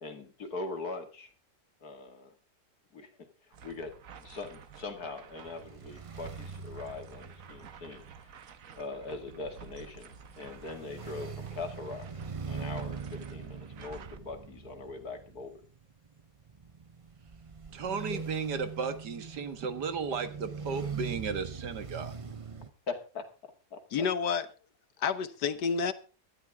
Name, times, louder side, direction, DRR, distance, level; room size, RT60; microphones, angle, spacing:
voice 1, 0.0-1.3 1.8-2.3 2.9-3.1 3.6-8.0 8.7-12.1 12.4-15.5 18.1-18.2 22.9-23.2 23.7-24.1, left 3 dB, 65° left, 2.7 m, -41 dB
sound 1, 3.5-14.2, right 7 dB, 55° right, 1.4 m, -51 dB
sound 2, 5.4-22.7, right 5 dB, 35° right, 0.5 m, -42 dB
voice 2, 17.7-22.2, right 5 dB, 85° right, 2.2 m, -35 dB
voice 3, 23.9-24.5 25.0-25.9, left 6 dB, 85° left, 1.7 m, -29 dB
18.5 x 12.5 x 3.6 m
omnidirectional pair, 1.7 m